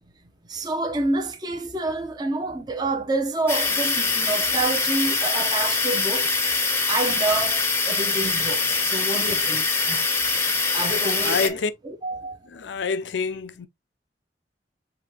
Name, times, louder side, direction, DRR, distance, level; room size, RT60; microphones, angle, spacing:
voice 1, 0.5-6.3 6.9-10.1 10.7-12.4, right 2 dB, 25° right, 0.6 m, -28 dB
sound 1, 3.5-11.5, left 4 dB, 15° left, 0.7 m, -23 dB
voice 2, 11.2-11.7 12.6-13.7, left 4 dB, 90° left, 0.5 m, -26 dB
5.9 x 2.8 x 2.9 m
head